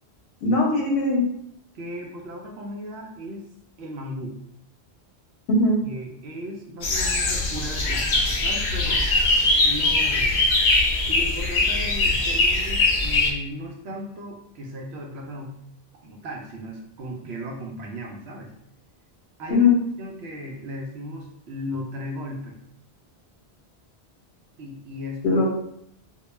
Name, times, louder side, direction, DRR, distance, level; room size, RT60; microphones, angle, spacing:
voice 1, 0.4-1.2 5.5-5.8 19.5-19.8 25.2-25.5, left 3 dB, 90° left, -2 dB, 0.9 m, -19 dB
voice 2, 1.7-3.5 3.8-4.3 5.8-9.1 9.6-10.4 11.1-15.5 16.0-18.5 19.4-19.7 20.0-22.6 24.6-25.4, equal, 75° right, 1 dB, 0.8 m, -36 dB
sound 1, 6.8-13.3, left 2 dB, 60° left, 0.6 m, -21 dB
2.3 x 2.1 x 3.0 m, 0.72 s
omnidirectional pair, 1.1 m